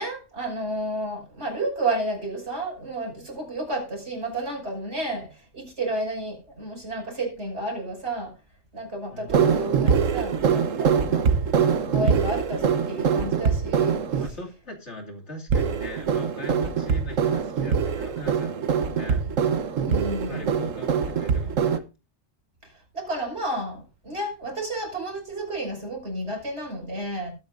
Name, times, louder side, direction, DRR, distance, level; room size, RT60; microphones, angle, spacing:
voice 1, 0.0-8.3 8.7-11.3 11.8-14.3 19.8-20.5 22.9-27.3, right 2 dB, 55° right, 6.4 m, -31 dB
voice 2, 9.1-9.5 14.2-19.2 20.3-21.8, left 1 dB, 60° left, 2.8 m, -40 dB
sound 1, 9.3-14.3 15.5-21.8, right 6 dB, 80° right, 1.4 m, -23 dB
20.5 x 8.8 x 2.5 m
omnidirectional pair, 1.3 m